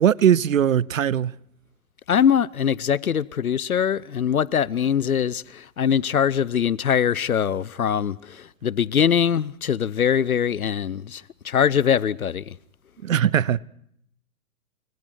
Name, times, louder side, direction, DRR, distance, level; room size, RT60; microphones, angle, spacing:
voice 1, 0.0-1.3 13.0-13.6, right 9 dB, 65° right, 0.8 m, -19 dB
voice 2, 2.1-12.6, left 8 dB, 75° left, 0.8 m, -22 dB
29.5 x 26.5 x 4.6 m
figure-of-eight pair, 120°, 43 cm